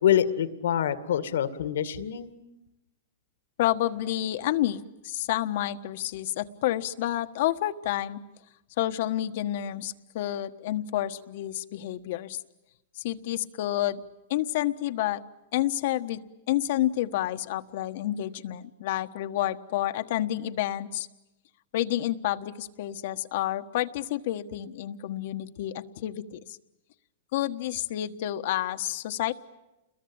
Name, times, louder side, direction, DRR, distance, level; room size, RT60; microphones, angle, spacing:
voice 1, 0.0-2.4, left 10 dB, 80° left, 11 dB, 2.2 m, -25 dB
voice 2, 3.6-8.2 8.8-12.4 13.0-14.0 14.3-15.2 15.5-16.2 16.5-21.1 21.7-26.4 27.3-29.3, left 13 dB, 60° left, 9 dB, 1.4 m, -29 dB
29.0 x 22.0 x 8.9 m, 0.96 s
hypercardioid pair, 145°, 0 cm